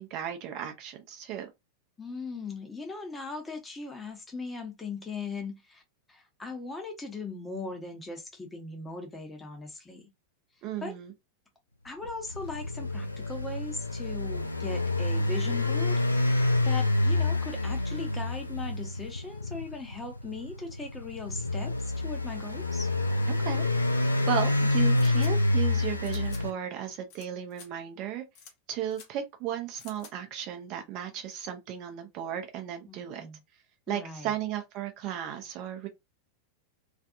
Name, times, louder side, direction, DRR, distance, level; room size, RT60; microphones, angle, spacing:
voice 1, 0.0-1.5 10.6-11.1 23.4-23.6 23.9-28.2 28.7-33.3 33.9-35.9, right 10 dB, 40° right, 0.6 m, -35 dB
voice 2, 2.0-5.8 6.1-10.0 10.8-11.0 11.8-22.9 32.9-33.4 33.9-34.3, left 3 dB, 10° left, 0.8 m, -39 dB
sound 1, 12.0-26.5, left 2 dB, 85° left, 0.3 m, -28 dB
sound 2, 25.0-25.3 26.0-26.4 27.1-27.3 27.5-27.7 28.3-28.5 28.9-29.1 29.8-30.1, left 6 dB, 45° left, 0.8 m, -50 dB
2.5 x 2.4 x 2.4 m
figure-of-eight pair, 90°, 0 cm